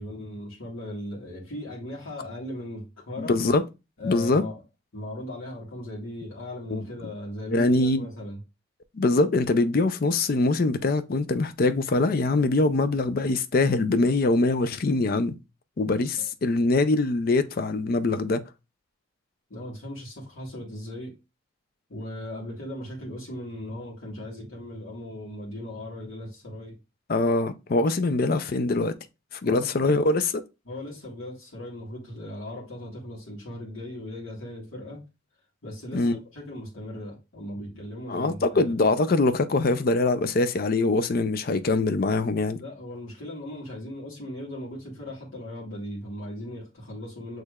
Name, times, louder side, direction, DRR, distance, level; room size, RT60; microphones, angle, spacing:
voice 1, 0.0-3.3 4.0-4.6 4.9-8.4 16.2-16.3 19.5-21.1 21.9-26.8 29.4-29.7 30.6-35.0 35.6-38.7 42.6-47.4, left 1 dB, 80° left, 1.7 m, -38 dB
voice 2, 3.2-3.6 4.0-4.4 6.7-6.8 7.5-8.1 8.9-15.4 15.8-18.4 27.1-28.9 29.4-30.4 35.9-36.2 38.1-42.6, left 2 dB, 45° left, 0.4 m, -23 dB
6.4 x 3.2 x 2.3 m
head